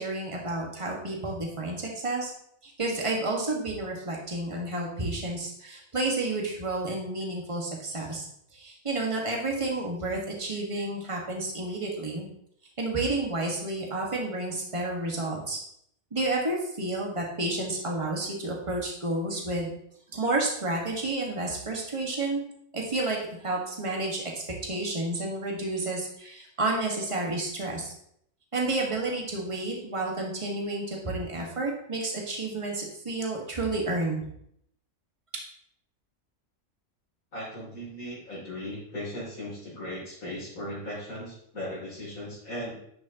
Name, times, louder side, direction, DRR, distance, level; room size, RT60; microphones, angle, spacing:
voice 1, 0.0-2.3 2.6-8.3 8.5-12.3 12.8-15.6 16.1-19.7 20.1-22.4 22.7-24.2 24.6-27.9 28.5-34.2, right 2 dB, 20° right, -1 dB, 1.7 m, -30 dB
voice 2, 37.3-42.8, left 1 dB, 70° left, -9 dB, 3.4 m, -37 dB
11.0 x 6.2 x 2.9 m, 0.70 s
omnidirectional pair, 1.5 m